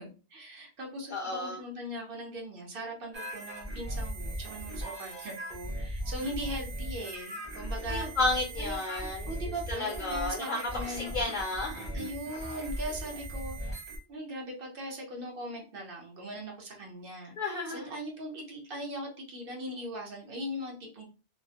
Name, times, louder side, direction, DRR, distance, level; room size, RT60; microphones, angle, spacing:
voice 1, 0.0-8.1 8.6-11.1 11.9-13.8 14.1-21.1, equal, 65° right, 1 dB, 0.9 m, -40 dB
voice 2, 1.1-1.6 7.9-9.3 9.7-10.6 10.9-11.9 17.4-17.9, left 2 dB, 55° left, 0 dB, 0.6 m, -32 dB
sound 1, 3.1-14.0, right 1 dB, 30° right, 0.7 m, -38 dB
2.4 x 2.0 x 2.7 m, 0.34 s
omnidirectional pair, 1.0 m